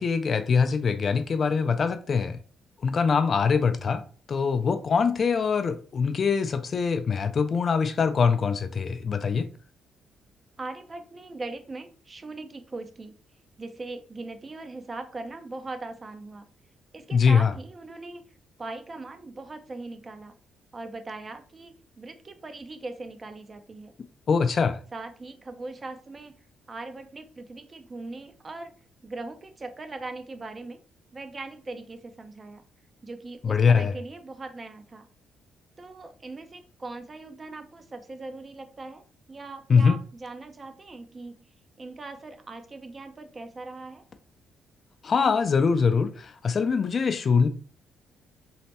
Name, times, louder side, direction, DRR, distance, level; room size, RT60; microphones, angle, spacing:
voice 1, 0.0-2.4 2.8-4.0 4.3-9.5 17.1-17.5 24.3-24.8 33.4-33.9 39.7-40.0 45.0-47.5, left 5 dB, 45° left, 0.3 m, -23 dB
voice 2, 10.6-13.2 13.6-16.5 16.9-18.2 18.6-20.3 20.7-23.9 24.9-26.4 26.7-28.7 29.0-30.8 31.1-32.6 33.0-35.1 35.8-41.4 41.8-44.0, right 3 dB, 30° right, 0.4 m, -40 dB
3.1 x 2.1 x 2.8 m
cardioid pair, 90°, 0 cm